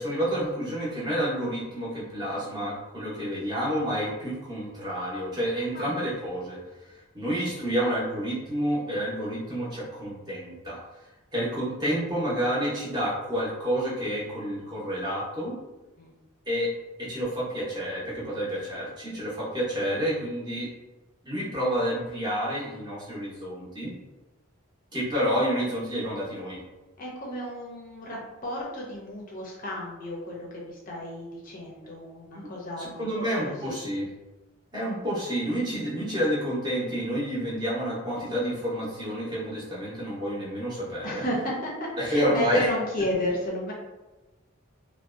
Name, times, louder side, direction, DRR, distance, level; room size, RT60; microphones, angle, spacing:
voice 1, 0.0-6.6 7.1-10.8 11.3-15.6 16.5-16.7 17.0-20.7 21.2-23.9 24.9-26.6 32.3-32.5 32.8-34.1 34.7-41.2 42.0-42.7, equal, 20° right, -7 dB, 0.7 m, -29 dB
voice 2, 27.0-33.8 34.7-34.8 41.0-43.7, left 1 dB, 40° left, -3 dB, 0.5 m, -33 dB
2.5 x 2.1 x 2.4 m, 1.1 s
head